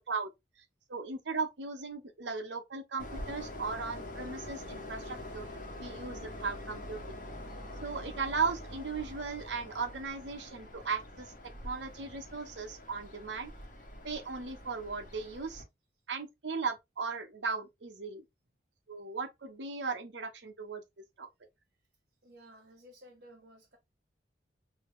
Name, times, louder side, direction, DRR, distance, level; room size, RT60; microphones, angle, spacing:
voice 1, 0.9-5.5 5.8-7.2 7.8-11.3 11.6-13.5 14.0-15.6 16.1-18.2 18.9-20.8 21.2-21.3, right 4 dB, 90° right, 0.9 m, -37 dB
Train, 3.0-15.6, left 1 dB, 45° left, 1.1 m, -45 dB
voice 2, 22.2-23.8, equal, 65° right, 1.0 m, -55 dB
3.4 x 2.8 x 3.1 m
head